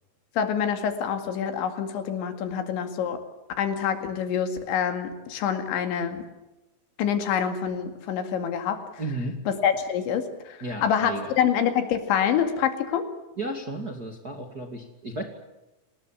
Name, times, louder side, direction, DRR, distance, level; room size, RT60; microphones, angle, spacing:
voice 1, 0.4-3.2 3.6-6.2 7.0-8.8 9.5-13.1, left 8 dB, 85° left, 7 dB, 4.6 m, -26 dB
voice 2, 9.0-9.4 10.6-11.3 13.4-15.2, right 1 dB, 30° right, 4 dB, 1.8 m, -33 dB
28.5 x 19.5 x 7.4 m, 1.0 s
omnidirectional pair, 5.1 m